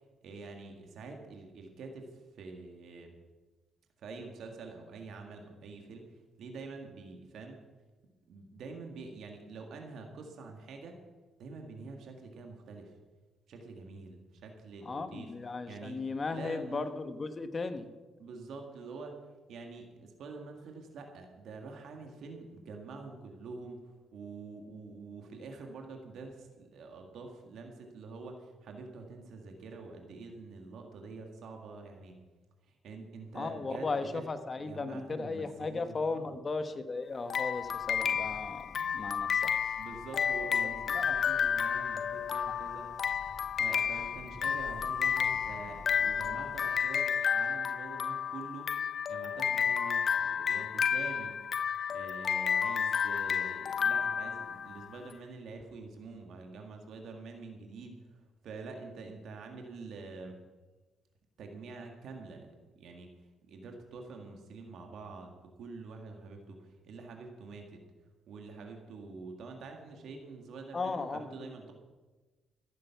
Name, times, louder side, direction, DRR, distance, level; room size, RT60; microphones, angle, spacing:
voice 1, 0.2-3.1 4.0-7.6 8.3-11.0 11.4-12.9 13.5-15.3 15.7-16.0 16.3-16.9 18.2-19.2 19.5-32.2 32.6-34.2 34.6-36.4 39.8-42.9 43.4-48.7 49.1-51.4 51.9-60.4 61.4-62.5 62.7-63.1 63.4-67.8 68.3-71.7, right 4 dB, 70° right, 3 dB, 1.9 m, -46 dB
voice 2, 14.8-17.9 33.3-39.5 40.9-41.2 70.7-71.5, left 3 dB, 35° left, 9 dB, 1.2 m, -36 dB
sound 1, 37.3-55.0, left 7 dB, 50° left, 0.4 m, -31 dB
sound 2, 37.5-46.7, right 1 dB, 40° right, 3.9 m, -53 dB
15.0 x 9.2 x 5.9 m, 1.2 s
cardioid pair, 90°, 0 cm